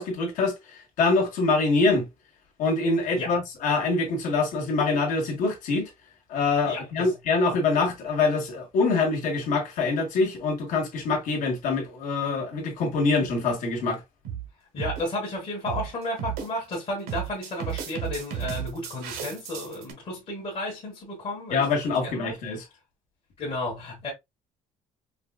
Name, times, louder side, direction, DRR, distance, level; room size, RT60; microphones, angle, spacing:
voice 1, 0.0-2.1 2.6-5.9 6.3-14.0 21.5-22.6, left 3 dB, 50° left, 1.5 m, -25 dB
voice 2, 6.7-7.1 14.7-22.3 23.4-24.1, left 1 dB, 35° left, 1.5 m, -33 dB
sound 1, 13.3-13.6 14.2-14.5 14.8-15.0 15.7-15.9 16.2-16.8 17.1-19.9, right 9 dB, 90° right, 1.1 m, -33 dB
4.9 x 2.4 x 2.3 m
cardioid pair, 175°, 16 cm